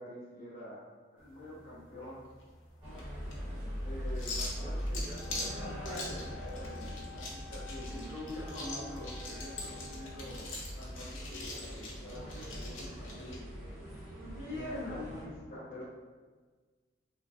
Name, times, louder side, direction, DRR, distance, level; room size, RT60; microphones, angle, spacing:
voice 1, 0.0-2.2 3.8-13.4 14.4-15.8, left 1 dB, 45° left, -9 dB, 0.6 m, -45 dB
sound 1, 1.2-13.4, left 2 dB, 85° left, 0.6 m, -44 dB
sound 2, 2.8-15.2, equal, 25° right, 1.2 m, -41 dB
Wind instrument woodwind instrument, 5.1-10.6, left 6 dB, 55° right, 0.5 m, -52 dB
3.3 x 2.2 x 2.6 m, 1.4 s
head